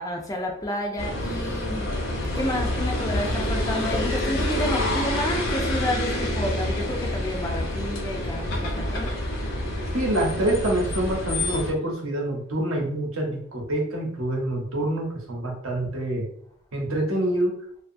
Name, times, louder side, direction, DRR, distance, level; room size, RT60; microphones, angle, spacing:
voice 1, 0.0-1.9 2.3-9.2 9.7-9.8, left 1 dB, 15° left, 0.3 m, -30 dB
sound 1, 1.0-11.7, left 1 dB, 70° left, 0.7 m, -27 dB
voice 2, 9.9-16.3 16.7-17.6, right 1 dB, 80° right, 0.8 m, -26 dB
2.6 x 2.2 x 2.5 m
head